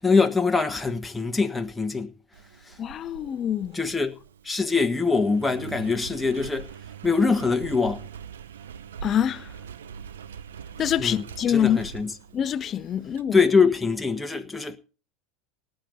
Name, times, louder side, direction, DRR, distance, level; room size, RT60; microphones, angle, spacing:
voice 1, 0.0-2.1 2.7-2.8 3.7-4.2 4.4-6.7 7.0-8.0 11.0-12.1 13.3-14.8, left 4 dB, 10° left, 1.5 m, -23 dB
Engine, 2.3-13.2, right 7 dB, 85° right, 0.8 m, -42 dB
voice 2, 2.8-3.7 9.0-9.5 10.8-11.8 12.3-13.4, left 9 dB, 40° left, 0.7 m, -25 dB
18.5 x 7.9 x 4.2 m
hypercardioid pair, 85°, 0 cm